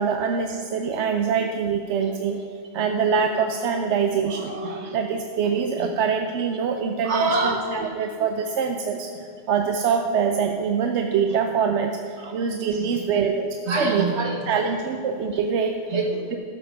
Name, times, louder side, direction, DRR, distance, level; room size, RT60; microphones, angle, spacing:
voice 1, 0.0-2.4 2.7-4.5 4.9-9.1 9.5-14.1 14.5-15.8, right 6 dB, 90° right, 5 dB, 1.0 m, -24 dB
voice 2, 4.3-4.9 5.8-5.9 7.0-7.9 12.2-12.3 13.7-14.6 15.9-16.2, right 3 dB, 75° right, 2 dB, 1.7 m, -26 dB
12.5 x 7.3 x 5.7 m, 2.4 s
omnidirectional pair, 1.2 m